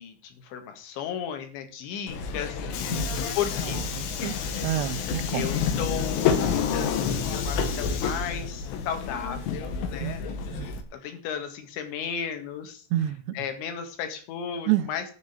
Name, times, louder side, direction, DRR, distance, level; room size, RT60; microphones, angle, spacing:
voice 1, 0.0-2.9 3.4-3.8 5.3-10.2 10.9-12.8 13.4-15.0, left 8 dB, 70° left, 7 dB, 4.0 m, -34 dB
Subway metro underground, 2.1-10.8, left 6 dB, 85° left, 4.1 m, -29 dB
voice 2, 2.9-3.3 3.6-5.5 10.0-10.2 10.5-10.7 12.9-13.4 14.7-14.9, right 13 dB, 80° right, 10 dB, 2.5 m, -29 dB
11.0 x 6.4 x 8.8 m, 0.43 s
omnidirectional pair, 5.6 m